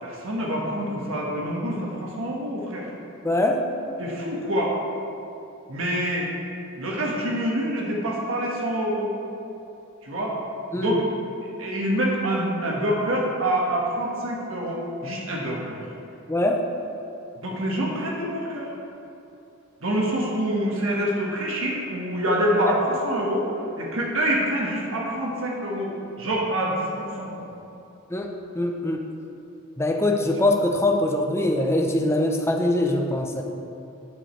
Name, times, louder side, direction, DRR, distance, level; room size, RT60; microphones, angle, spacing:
voice 1, 0.0-2.9 4.0-4.7 5.7-6.3 6.8-9.1 10.0-10.4 10.7-11.0 11.6-15.8 17.4-18.7 19.8-23.5 23.8-27.4, right 1 dB, 70° right, -3 dB, 1.4 m, -26 dB
voice 2, 3.2-3.6 10.7-11.0 16.3-16.6 28.1-28.3 28.5-29.0 29.8-33.4, left 1 dB, 10° left, 1 dB, 0.6 m, -22 dB
10.0 x 4.8 x 4.5 m, 2.8 s
head